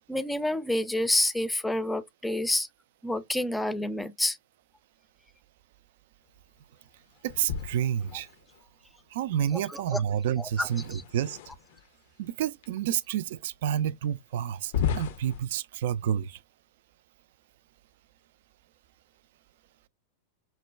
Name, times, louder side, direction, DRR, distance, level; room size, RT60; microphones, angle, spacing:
voice 1, 0.1-2.7 3.0-4.4 9.9-10.0 10.6-10.7, left 1 dB, 5° left, 0.5 m, -28 dB
voice 2, 7.2-8.3 9.1-11.4 12.2-16.4, right 10 dB, 55° right, 0.3 m, -29 dB
sound 1, 7.3-8.6 10.4-11.9 12.6-12.7 13.4-13.5 14.6-15.4, left 8 dB, 55° left, 0.5 m, -34 dB
6.1 x 2.1 x 2.3 m
figure-of-eight pair, 90°, 0 cm